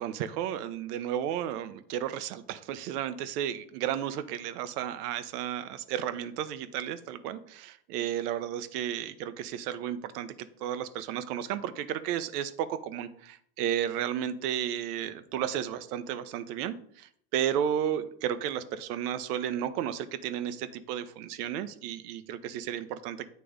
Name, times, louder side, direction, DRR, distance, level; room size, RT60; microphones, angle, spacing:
voice 1, 0.0-23.3, right 10 dB, 70° right, 12 dB, 0.8 m, -33 dB
9.2 x 3.3 x 5.0 m, 0.64 s
supercardioid pair, 110°, 48 cm